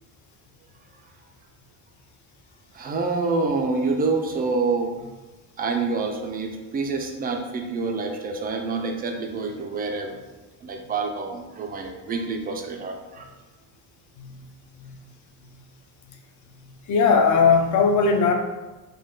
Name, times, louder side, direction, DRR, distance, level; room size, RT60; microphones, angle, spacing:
voice 1, 2.7-4.9 5.6-10.2 10.6-13.3, right 4 dB, 20° right, 3 dB, 0.3 m, -27 dB
voice 2, 16.9-18.3, left 5 dB, 40° left, 4 dB, 0.6 m, -19 dB
5.2 x 2.2 x 3.7 m, 1.1 s
cardioid pair, 130°, 46 cm